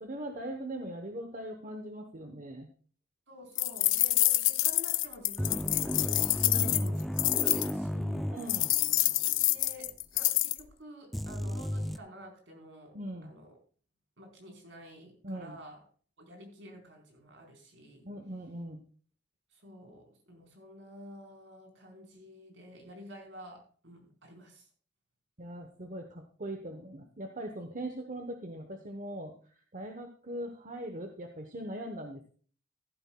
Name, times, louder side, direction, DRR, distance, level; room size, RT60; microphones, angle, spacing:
voice 1, 0.0-2.7 6.4-7.0 8.3-8.7 12.9-13.3 15.2-15.6 18.0-18.8 25.4-29.4 29.7-32.3, right 1 dB, 40° right, 5 dB, 1.0 m, -40 dB
voice 2, 3.3-7.0 7.4-8.4 9.5-13.6 14.2-15.8 16.2-18.1 19.5-24.7, equal, 70° right, 1 dB, 4.3 m, -50 dB
sound 1, 3.6-7.7 8.5-10.6, left 16 dB, 75° left, 0.6 m, -27 dB
sound 2, 5.4-9.1 9.4-9.5 11.1-12.0, equal, ahead, 0.4 m, -34 dB
14.5 x 12.0 x 2.3 m, 0.44 s
head